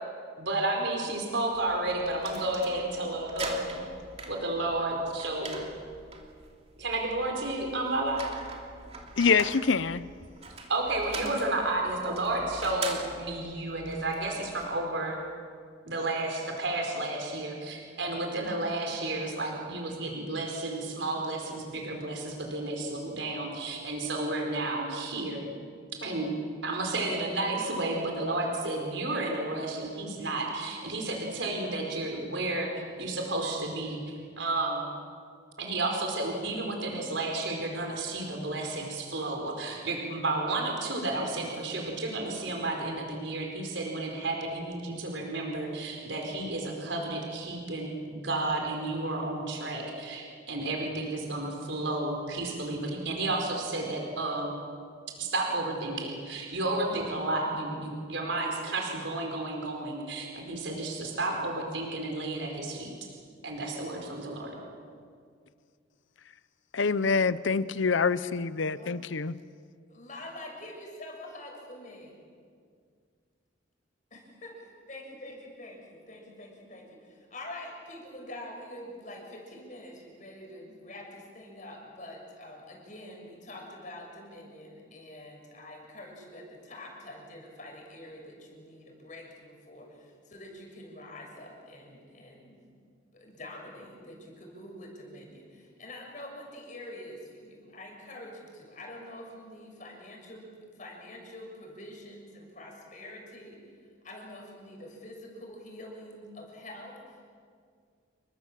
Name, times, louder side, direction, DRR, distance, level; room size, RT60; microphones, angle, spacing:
voice 1, 0.4-3.8 4.3-5.6 6.8-8.2 10.7-15.2 15.8-25.4 26.0-26.3 26.6-34.9 35.6-54.6 55.2-62.9 63.4-64.5, right 2 dB, 70° right, 4.7 m, -32 dB
sound 1, 1.5-14.8, right 3 dB, 30° right, 3.0 m, -43 dB
voice 2, 9.2-10.1 66.7-69.3, left 5 dB, 75° left, 0.7 m, -25 dB
voice 3, 69.9-72.2 74.1-92.6 93.1-103.7 104.0-107.3, left 1 dB, 40° left, 6.5 m, -46 dB
29.5 x 23.5 x 7.5 m
head